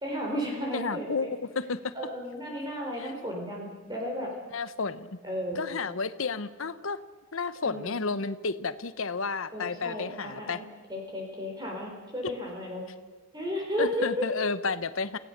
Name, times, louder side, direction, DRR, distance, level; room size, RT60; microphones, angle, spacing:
voice 1, 0.0-1.3 1.9-4.3 5.2-5.7 7.6-8.0 9.5-10.6 10.9-12.8 13.3-14.3, equal, 20° right, 0 dB, 4.2 m, -33 dB
voice 2, 0.7-1.9 3.0-3.1 4.5-5.1 5.5-7.0 7.3-10.6 13.8-15.2, left 4 dB, 75° left, 14 dB, 0.9 m, -31 dB
29.0 x 16.5 x 6.7 m, 1.4 s
head